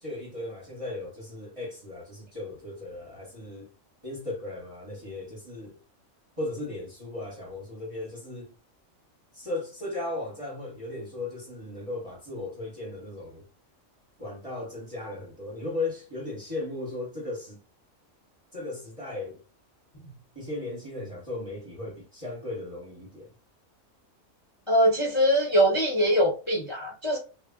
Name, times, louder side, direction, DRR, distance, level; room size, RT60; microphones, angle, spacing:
voice 1, 0.0-3.7 4.0-5.8 6.4-8.5 9.3-13.4 14.2-17.6 18.5-19.4 20.3-23.3, left 2 dB, 30° right, 0.8 m, -36 dB
voice 2, 24.7-27.2, equal, 25° left, 0.7 m, -22 dB
2.2 x 2.1 x 3.5 m
omnidirectional pair, 1.4 m